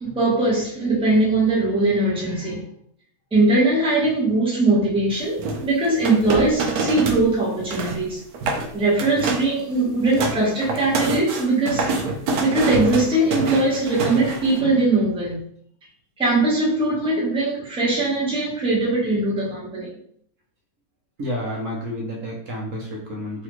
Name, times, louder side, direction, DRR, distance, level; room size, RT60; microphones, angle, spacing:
voice 1, 0.0-2.6 3.3-8.2 8.7-11.8 12.4-15.4 16.2-19.9, right 2 dB, 5° right, -6 dB, 0.8 m, -21 dB
sound 1, 5.4-7.2 7.5-8.0 8.3-8.7 9.0-9.5 9.9-14.6, right 3 dB, 90° right, 1.1 m, -26 dB
voice 2, 21.2-23.4, equal, 65° right, -2 dB, 1.1 m, -30 dB
3.2 x 2.4 x 3.0 m, 0.66 s
omnidirectional pair, 1.5 m